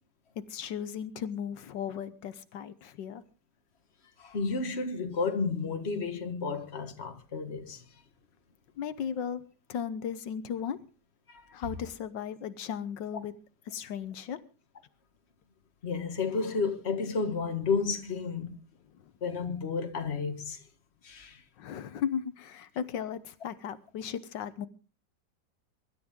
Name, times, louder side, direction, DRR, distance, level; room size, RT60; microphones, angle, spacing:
voice 1, 0.4-3.2 8.8-9.4 9.7-10.8 11.5-13.3 13.7-14.4 18.9-19.0 21.6-24.7, left 8 dB, 85° left, 1.6 m, -36 dB
voice 2, 4.2-8.0 11.3-11.5 15.8-18.6 19.2-20.6 21.0-21.4, left 4 dB, 40° left, 1.8 m, -32 dB
23.5 x 12.5 x 3.7 m
omnidirectional pair, 1.9 m